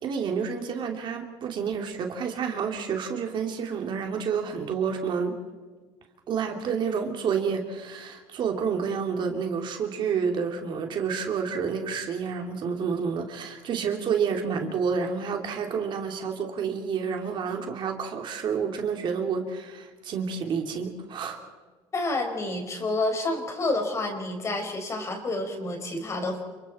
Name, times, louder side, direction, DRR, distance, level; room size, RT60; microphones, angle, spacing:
voice 1, 0.0-5.3 6.3-21.4, right 6 dB, 45° right, 3 dB, 2.8 m, -29 dB
voice 2, 21.9-26.4, left 2 dB, 25° left, 4 dB, 4.9 m, -29 dB
30.0 x 28.0 x 4.3 m, 1.4 s
cardioid pair, 160°, 11 cm